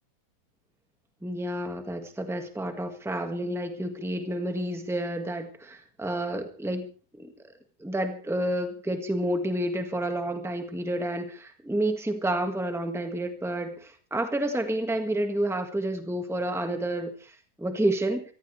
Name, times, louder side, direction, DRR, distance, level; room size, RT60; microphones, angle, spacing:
voice 1, 1.2-6.9 7.2-7.3 7.8-18.2, right 1 dB, ahead, 6 dB, 0.5 m, -30 dB
26.5 x 14.5 x 3.3 m, 0.37 s
omnidirectional pair, 3.6 m